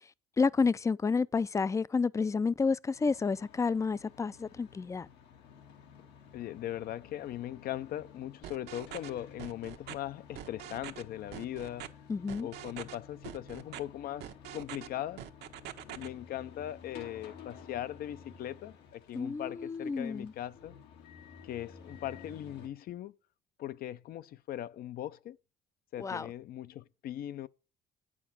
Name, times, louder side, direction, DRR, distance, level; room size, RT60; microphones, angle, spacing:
voice 1, 0.4-5.1 12.1-12.5 19.1-20.3 26.0-26.3, left 4 dB, 20° left, 0.4 m, -30 dB
sound 1, 2.9-22.7, left 6 dB, 90° left, 2.0 m, -53 dB
voice 2, 6.3-11.9 12.4-15.3 15.9-20.8 21.4-23.1 23.6-25.4 25.9-27.5, left 12 dB, 60° left, 0.6 m, -40 dB
sound 2, 8.4-9.1 9.4-10.0 10.4-11.0 11.3-11.9 12.3-13.0 13.2-13.8 14.2-14.9 15.2-16.1, right 12 dB, 80° right, 1.0 m, -44 dB
9.0 x 6.1 x 6.0 m
cardioid pair, 110°, 17 cm